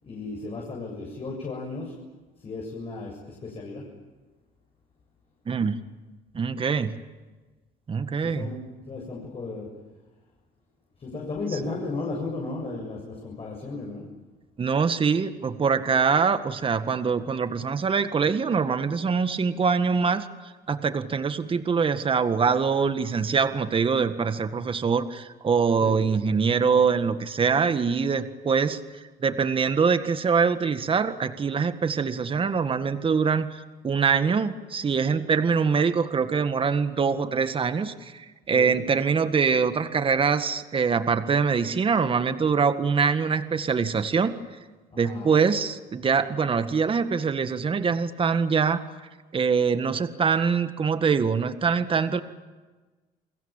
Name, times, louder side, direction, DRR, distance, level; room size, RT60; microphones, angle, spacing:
voice 1, 0.0-1.9 2.4-3.8 8.2-8.6 8.8-9.7 11.0-14.1 25.8-26.0 38.5-38.8 44.9-45.4, left 3 dB, 35° left, -2 dB, 7.7 m, -34 dB
voice 2, 5.5-5.8 6.3-6.9 7.9-8.5 14.6-20.3 20.7-28.8 29.2-44.3 45.0-48.8 49.3-52.2, right 5 dB, 30° right, 10 dB, 1.8 m, -24 dB
30.0 x 22.0 x 9.0 m, 1.3 s
cardioid pair, 110°, 17 cm